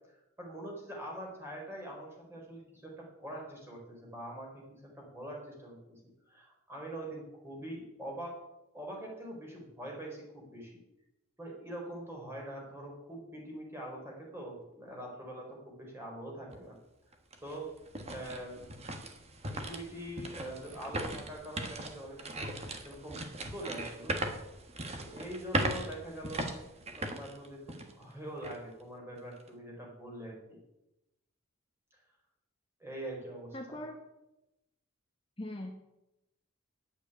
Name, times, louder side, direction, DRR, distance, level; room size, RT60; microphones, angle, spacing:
voice 1, 0.4-4.6 5.0-5.8 6.2-8.3 8.7-10.7 11.4-16.8 17.4-17.7 18.1-18.6 19.5-22.6 22.8-24.4 25.0-26.5 26.9-30.6 32.8-33.8, right 1 dB, 10° right, -2 dB, 4.5 m, -43 dB
sound 1, 16.5-16.6 17.1-28.0 28.4-28.6 29.2-29.5, right 2 dB, 30° right, 1.4 m, -38 dB
voice 2, 33.5-34.0 35.4-35.7, left 1 dB, 25° left, 2 dB, 1.2 m, -40 dB
9.6 x 8.3 x 9.7 m, 0.91 s
head